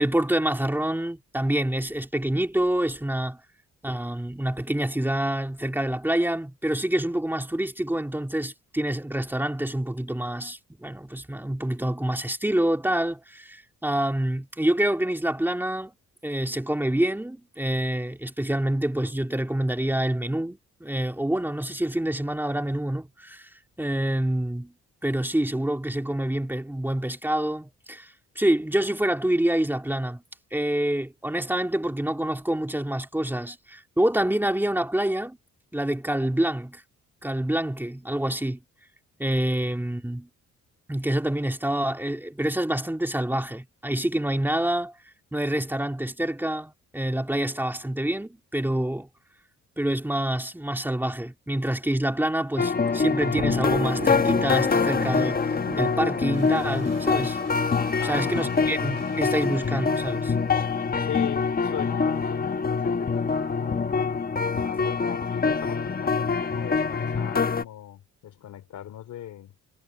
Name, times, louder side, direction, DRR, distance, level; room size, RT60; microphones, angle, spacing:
voice 1, 0.0-3.4 3.8-15.9 16.2-23.5 23.8-24.7 25.0-30.2 30.5-35.4 35.7-36.8 37.2-38.6 39.2-40.3 40.9-44.9 45.3-49.1 49.8-57.4 58.0-60.3, right 1 dB, 5° right, 2.2 m, -27 dB
sound 1, 52.6-67.6, left 5 dB, 30° left, 1.4 m, -25 dB
Thunder, 53.2-57.3, right 4 dB, 25° right, 1.7 m, -39 dB
sound 2, 56.3-63.8, right 9 dB, 60° right, 5.0 m, -49 dB
voice 2, 58.0-58.9 61.0-63.9 64.5-69.6, left 12 dB, 75° left, 3.1 m, -39 dB
cardioid pair, 90°, 30 cm